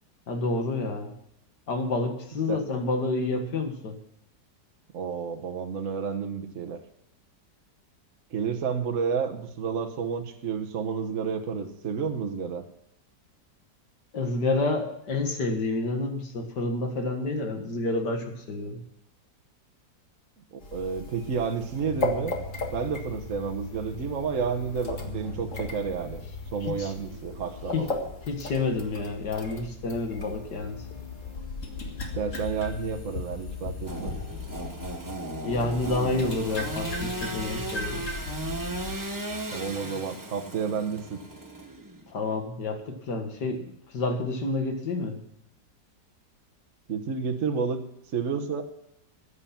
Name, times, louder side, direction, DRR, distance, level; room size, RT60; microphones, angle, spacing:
voice 1, 0.3-1.1 1.7-4.0 14.1-18.8 26.6-26.9 27.7-27.9 28.2-31.0 35.4-38.0 42.1-45.2, left 3 dB, 70° left, 5 dB, 2.3 m, -29 dB
voice 2, 4.9-6.8 8.3-12.6 20.5-22.4 22.7-26.2 26.5-27.9 32.1-34.1 39.5-41.2 46.9-47.8 48.1-48.6, right 6 dB, 50° right, 5 dB, 1.4 m, -30 dB
sound 1, 20.6-35.0 35.5-39.0, left 2 dB, 45° left, 2.1 m, -37 dB
sound 2, 22.1-39.8, left 9 dB, 30° left, 2.0 m, -45 dB
Engine / Sawing, 33.9-42.1, right 2 dB, 15° right, 0.9 m, -36 dB
14.5 x 9.9 x 5.8 m, 0.79 s
omnidirectional pair, 1.9 m